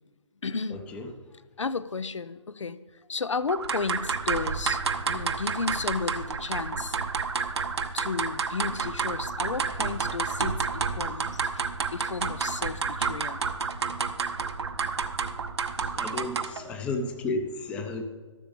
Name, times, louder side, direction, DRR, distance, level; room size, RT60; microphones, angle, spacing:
voice 1, 0.4-0.8 1.3-7.0 7.9-11.6 11.9-13.4 16.5-16.6, left 4 dB, 75° left, 16 dB, 0.6 m, -33 dB
sound 1, 3.5-16.7, right 5 dB, 60° right, 0.9 m, -30 dB
voice 2, 16.0-18.0, left 2 dB, 5° left, 5 dB, 0.6 m, -32 dB
13.5 x 6.9 x 5.1 m, 1.4 s
figure-of-eight pair, 150°, 16 cm